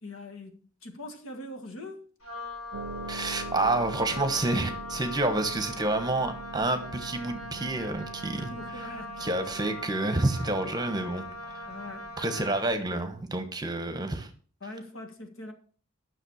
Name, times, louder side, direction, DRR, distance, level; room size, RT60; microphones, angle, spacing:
voice 1, 0.0-2.0 8.3-9.3 11.7-12.5 14.6-15.5, left 1 dB, 65° left, 1.7 m, -43 dB
Wind instrument woodwind instrument, 2.2-12.8, left 2 dB, 85° left, 3.7 m, -41 dB
Harp, 2.7-13.3, right 2 dB, 70° right, 0.5 m, -44 dB
voice 2, 3.1-8.8 9.2-11.7 12.2-14.3, right 2 dB, 20° right, 1.1 m, -29 dB
10.0 x 6.4 x 6.3 m
head